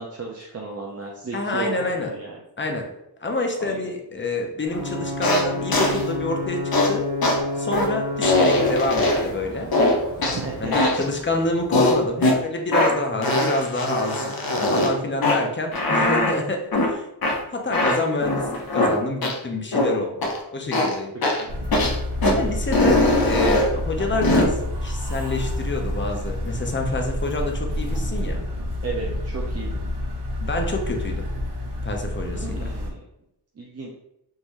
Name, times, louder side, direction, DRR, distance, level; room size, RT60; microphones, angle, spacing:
voice 1, 0.0-2.4 3.6-3.8 10.2-11.0 21.4-21.5 23.0-23.1 24.0-24.2 28.8-29.8 32.3-33.0 33.6-33.9, right 4 dB, 40° right, -3 dB, 0.6 m, -34 dB
voice 2, 1.3-2.1 2.6-2.9 3.2-6.6 6.9-7.1 7.5-9.7 10.6-14.4 14.7-17.1 17.5-21.2 22.2-28.4 30.4-31.2 31.8-32.6, left 2 dB, 30° left, 2 dB, 0.6 m, -27 dB
Ocean / Boat Water vehicle / Alarm, 4.7-12.2, left 2 dB, 45° left, 1.2 m, -32 dB
sound 1, 5.2-5.4 5.7-6.0 6.7-6.9 7.2-7.4 7.7-7.9 8.2-9.3 9.7-10.4 10.7-11.0 11.7-12.4 12.7-12.9 13.2-14.9 15.2-15.4 15.7-16.3 16.7-16.9 17.2-17.3 17.7-18.9 19.2-19.3 19.7-19.9 20.2-20.4 20.7-20.9 21.2-21.4 21.7-21.9 22.2-22.3 22.7-23.7 24.2-24.4, left 1 dB, 60° left, 0.7 m, -20 dB
sound 2, 21.5-32.9, left 1 dB, 80° right, 0.8 m, -28 dB
3.7 x 2.6 x 3.0 m, 0.83 s
wide cardioid pair, 70°, 40 cm